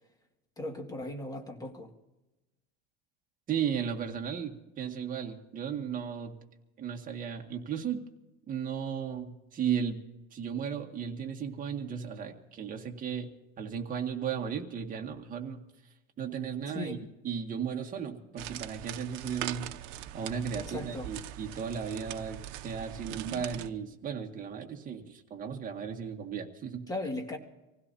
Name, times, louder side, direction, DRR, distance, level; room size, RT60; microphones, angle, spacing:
voice 1, 0.6-1.9 16.7-17.0 20.5-21.1 26.9-27.4, left 2 dB, 10° left, 3 dB, 2.0 m, -37 dB
voice 2, 3.5-6.3 6.8-8.0 8.5-10.0 10.3-13.3 13.6-15.6 16.2-17.0 17.2-19.7 20.1-22.4 22.6-26.8, right 7 dB, 25° right, 2 dB, 1.8 m, -35 dB
sound 1, 18.4-23.7, right 13 dB, 65° right, 0.9 m, -41 dB
26.5 x 16.5 x 2.8 m, 1.0 s
cardioid pair, 160°, 32 cm